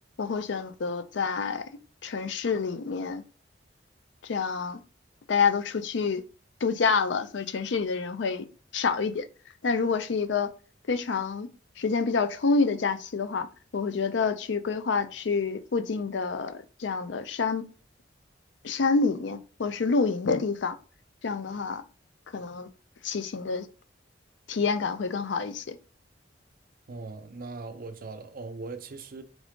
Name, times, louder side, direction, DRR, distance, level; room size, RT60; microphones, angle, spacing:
voice 1, 0.2-1.6 2.0-3.2 4.2-4.8 5.3-6.2 6.6-8.5 8.7-9.2 9.6-10.5 10.9-11.5 11.8-13.5 13.7-17.6 18.6-20.7 21.2-21.8 22.3-22.7 23.0-23.7 24.5-25.8, left 4 dB, 75° left, 0.5 m, -27 dB
voice 2, 26.9-29.2, right 3 dB, 50° right, 0.6 m, -40 dB
3.6 x 3.6 x 3.6 m
head